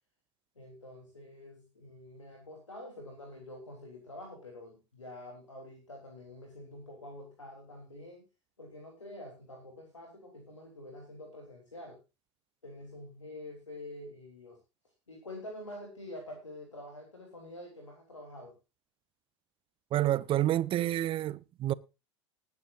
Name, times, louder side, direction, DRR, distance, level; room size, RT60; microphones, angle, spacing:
voice 1, 0.5-8.2 8.6-12.0 12.6-14.6 15.1-18.5, left 1 dB, 90° left, 3.4 m, -47 dB
voice 2, 19.9-21.7, right 13 dB, 35° right, 0.7 m, -28 dB
19.0 x 9.5 x 2.6 m
figure-of-eight pair, 85°, 15 cm